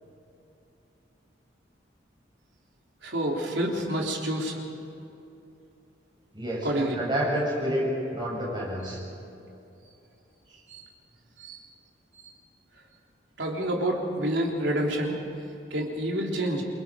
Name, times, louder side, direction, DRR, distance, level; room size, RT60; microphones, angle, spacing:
voice 1, 3.0-4.6 6.6-6.9 10.7-10.8 11.4-11.6 13.4-15.1 15.7-16.6, right 1 dB, 70° right, -1 dB, 3.3 m, -28 dB
voice 2, 6.3-9.0, equal, 25° right, -4 dB, 7.0 m, -29 dB
29.0 x 23.5 x 5.0 m, 2.8 s
head